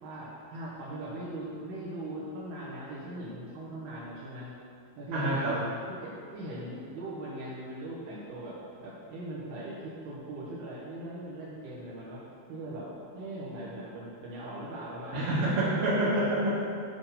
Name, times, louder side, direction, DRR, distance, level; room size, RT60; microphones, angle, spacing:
voice 1, 0.0-4.5 5.0-5.5 5.9-12.2 12.5-15.4 16.0-16.2, right 1 dB, 75° right, -7 dB, 2.9 m, -40 dB
voice 2, 5.1-5.6 15.1-16.6, right 1 dB, 45° right, -9 dB, 2.6 m, -27 dB
9.4 x 3.6 x 5.4 m, 2.4 s
omnidirectional pair, 4.7 m